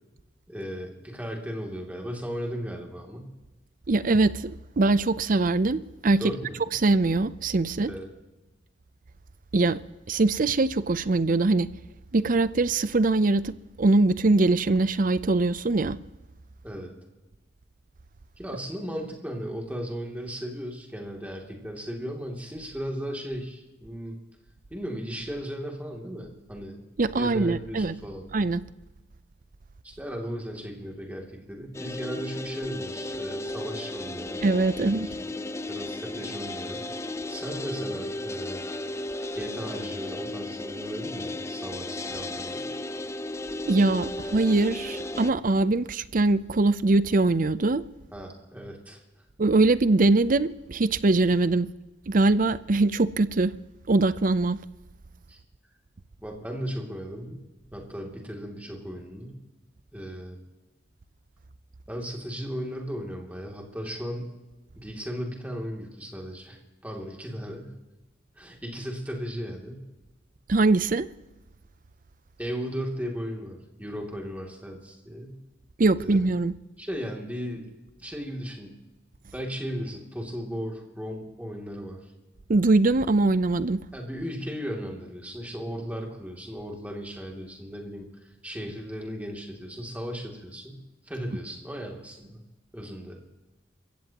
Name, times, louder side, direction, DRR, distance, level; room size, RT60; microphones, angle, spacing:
voice 1, 0.5-3.3 6.2-6.6 7.9-8.1 16.6-16.9 18.4-24.2 24.7-26.8 27.2-28.3 29.8-34.4 34.8-35.3 35.7-36.8 37.3-38.6 39.3-42.7 48.1-49.0 55.3-55.4 56.2-57.4 57.7-59.4 59.9-60.4 61.9-64.3 64.7-67.8 68.4-69.8 72.4-75.4 76.0-76.3 76.8-77.7 78.0-78.8 79.3-82.0 83.9-88.1 88.4-92.4 92.7-93.2, equal, 10° right, 2.7 m, -36 dB
voice 2, 3.9-6.2 6.8-7.9 9.5-9.8 10.1-11.7 12.1-13.5 13.8-16.0 27.0-27.9 28.3-28.6 34.4-35.1 43.7-47.8 49.4-51.7 52.1-53.5 53.9-54.6 70.5-71.1 75.8-76.5 82.5-83.8, right 2 dB, 45° right, 0.6 m, -22 dB
sound 1, 31.7-45.3, left 2 dB, 15° left, 0.5 m, -35 dB
29.0 x 15.5 x 3.0 m
head